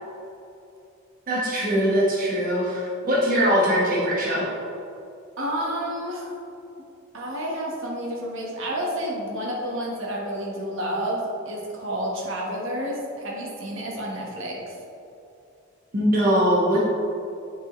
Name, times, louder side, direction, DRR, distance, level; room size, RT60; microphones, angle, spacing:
voice 1, 1.3-4.5 15.9-16.8, equal, 40° right, -5 dB, 1.1 m, -21 dB
voice 2, 5.4-6.4 7.1-14.7, equal, 65° right, -2 dB, 1.3 m, -30 dB
9.7 x 4.8 x 3.1 m, 2.7 s
head